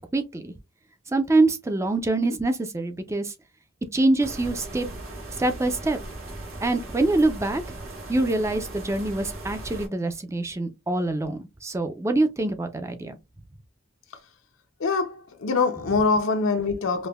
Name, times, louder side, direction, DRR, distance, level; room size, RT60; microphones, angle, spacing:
voice 1, 0.1-0.5 1.1-3.3 3.9-4.9 5.4-6.0 6.6-7.6 8.1-13.2, right 2 dB, 15° right, 0.4 m, -25 dB
sound 1, 4.2-9.9, right 2 dB, 85° right, 1.6 m, -38 dB
voice 2, 14.8-17.1, left 4 dB, 70° left, 0.5 m, -24 dB
5.1 x 2.1 x 2.2 m
head